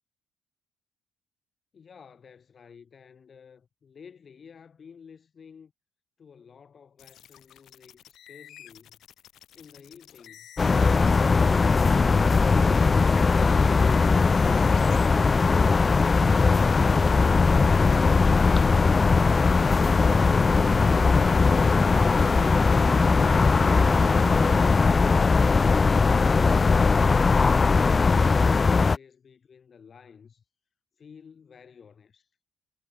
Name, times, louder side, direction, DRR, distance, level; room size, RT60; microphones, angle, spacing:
voice 1, 1.7-5.7 6.2-9.0 9.5-12.4 24.7-30.4 31.0-32.3, left 6 dB, 45° left, 7.4 m, -52 dB
sound 1, 7.0-15.1, left 11 dB, 75° left, 3.2 m, -51 dB
sound 2, 10.6-29.0, left 4 dB, 30° left, 0.5 m, -20 dB
sound 3, 19.2-24.6, right 9 dB, 60° right, 3.1 m, -41 dB
cardioid pair, 90°, 0 cm